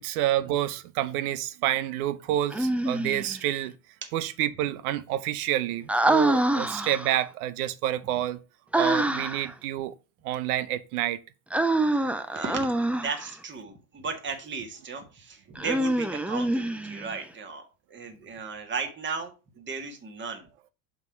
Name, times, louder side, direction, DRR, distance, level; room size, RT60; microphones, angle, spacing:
voice 1, 0.0-3.7 4.1-8.4 8.8-9.9 10.2-11.2, right 12 dB, 75° right, 0.8 m, -28 dB
Human voice, 2.5-3.4 5.9-7.2 8.7-9.5 11.5-13.3 15.6-17.2, right 1 dB, 5° right, 0.4 m, -26 dB
voice 2, 12.3-12.7 13.0-20.5, right 4 dB, 25° right, 1.7 m, -35 dB
5.8 x 3.8 x 5.9 m
supercardioid pair, 95°, 46 cm